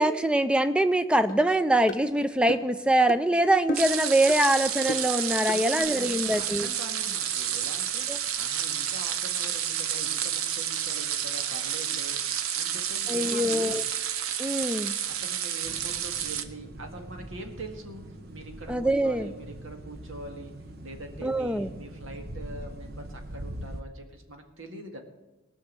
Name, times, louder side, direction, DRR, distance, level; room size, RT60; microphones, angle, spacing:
voice 1, 0.0-6.7 8.1-8.2 13.1-13.8 14.4-15.0 18.7-19.3 21.2-21.7, right 1 dB, 5° right, 11 dB, 0.4 m, -24 dB
sound 1, 1.3-1.4 1.9-2.0 2.5-2.7 3.1-3.2 3.7-4.0 4.3-4.4 4.9-5.1 5.5-5.6, left 2 dB, 40° left, 0.8 m, -34 dB
sound 2, 3.7-16.4, right 9 dB, 90° right, 0.8 m, -30 dB
voice 2, 5.4-8.1 8.4-13.9 15.0-18.0 18.3-20.5 20.8-25.0, right 2 dB, 70° right, 4 dB, 1.9 m, -43 dB
sound 3, 15.6-23.8, right 1 dB, 45° right, 1.0 m, -42 dB
18.5 x 6.3 x 7.5 m, 1.0 s
head